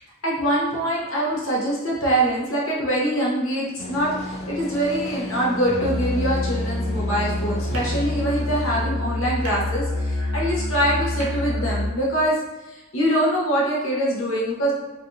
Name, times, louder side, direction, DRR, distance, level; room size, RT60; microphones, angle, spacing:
voice 1, 0.2-12.3 12.7-14.7, right 1 dB, 60° left, -4 dB, 0.9 m, -24 dB
sound 1, 3.8-8.9, left 1 dB, 30° left, 0.3 m, -34 dB
Musical instrument, 5.7-12.0, left 1 dB, 80° right, 0.5 m, -27 dB
3.3 x 2.3 x 2.6 m, 1.1 s
head